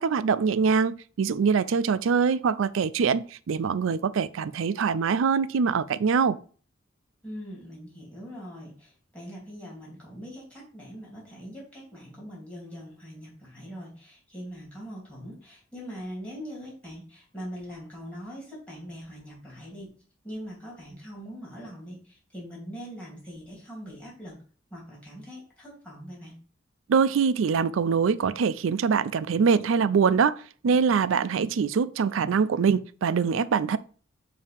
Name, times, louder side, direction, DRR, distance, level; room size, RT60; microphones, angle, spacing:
voice 1, 0.0-6.4 26.9-33.8, right 6 dB, 80° right, 0.4 m, -24 dB
voice 2, 7.2-19.9 20.2-24.3 24.7-26.3, equal, 5° left, 2.8 m, -42 dB
7.2 x 2.8 x 5.1 m
head